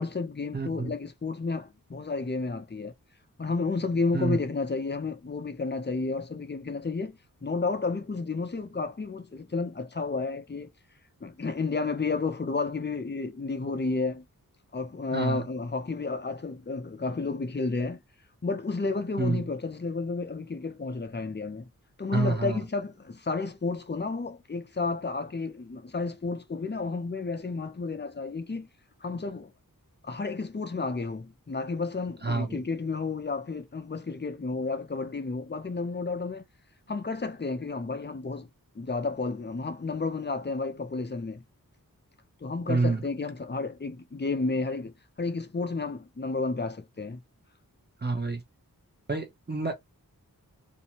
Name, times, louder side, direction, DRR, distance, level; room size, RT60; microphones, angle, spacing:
voice 1, 0.0-2.9 3.4-10.7 11.2-14.2 14.7-18.0 18.4-21.6 22.0-28.7 29.0-29.5 30.0-36.4 36.9-38.5 38.8-41.4 42.4-44.9 45.2-47.2, left 3 dB, 30° left, 0.6 m, -31 dB
voice 2, 0.5-0.9 4.1-4.4 15.1-15.4 19.2-19.4 22.1-22.6 32.2-32.6 42.7-43.0 48.0-48.4 49.1-49.7, right 3 dB, 30° right, 0.8 m, -28 dB
2.6 x 2.2 x 2.9 m
wide cardioid pair, 70°, 35 cm